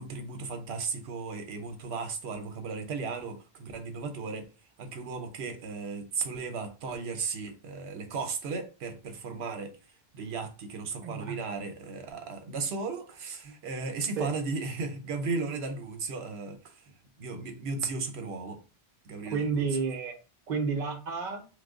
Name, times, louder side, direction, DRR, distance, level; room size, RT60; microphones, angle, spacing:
voice 1, 0.0-4.4 4.8-9.7 10.1-16.7 17.2-18.6 19.1-19.7, right 4 dB, 85° right, 0.9 m, -35 dB
voice 2, 11.0-11.4 13.4-13.5 14.2-14.3 19.2-20.2 20.5-21.5, right 5 dB, 50° right, 0.8 m, -31 dB
3.3 x 2.0 x 3.5 m
omnidirectional pair, 1.1 m